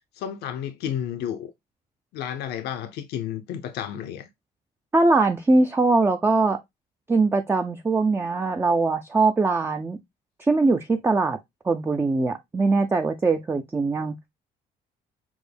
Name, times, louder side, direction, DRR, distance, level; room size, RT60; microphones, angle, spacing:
voice 1, 0.2-1.5 2.1-4.3, left 9 dB, 75° left, 0.6 m, -31 dB
voice 2, 4.9-6.6 7.1-10.0 10.4-11.4 11.6-14.1, right 3 dB, 15° right, 0.4 m, -21 dB
6.1 x 2.1 x 3.3 m
cardioid pair, 110°, 17 cm